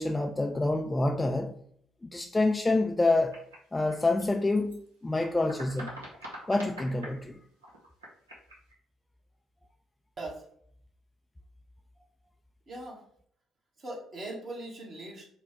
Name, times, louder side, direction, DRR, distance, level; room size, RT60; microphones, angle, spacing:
voice 1, 0.0-1.5 2.1-3.4 3.7-5.9 6.5-7.4, left 2 dB, 15° left, 0.3 m, -27 dB
sound 1, 3.3-4.8 5.0-7.2 7.6-8.7, right 1 dB, 85° right, 0.9 m, -44 dB
voice 2, 12.7-13.0 13.8-15.3, right 2 dB, 45° right, 1.4 m, -40 dB
3.9 x 2.3 x 4.5 m
figure-of-eight pair, 45°, 0 cm